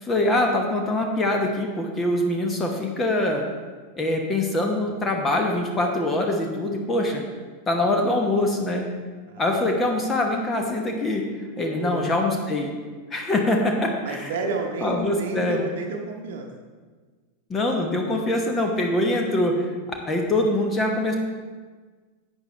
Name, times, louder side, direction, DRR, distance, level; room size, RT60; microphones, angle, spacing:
voice 1, 0.0-3.5 4.0-7.2 7.7-8.9 9.4-11.3 11.6-12.7 13.1-14.3 14.8-15.6 17.5-19.7 20.1-21.1, left 1 dB, 20° left, 2 dB, 1.1 m, -24 dB
voice 2, 11.7-12.1 14.0-16.5, right 3 dB, 55° right, 3 dB, 0.9 m, -31 dB
11.0 x 8.2 x 3.3 m, 1.4 s
figure-of-eight pair, 90°, 0 cm